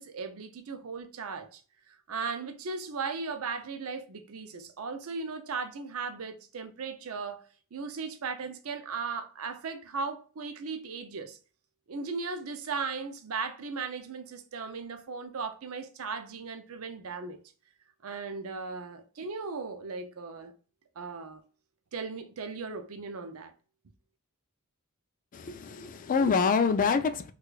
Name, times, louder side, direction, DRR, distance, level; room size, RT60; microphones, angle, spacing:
voice 1, 0.0-1.6 2.1-7.4 7.7-11.4 11.9-17.4 18.0-20.5 21.0-21.4 21.9-23.5, right 4 dB, 65° right, 0.5 m, -37 dB
voice 2, 25.3-27.3, left 5 dB, 35° left, 0.3 m, -26 dB
4.7 x 2.3 x 2.3 m
head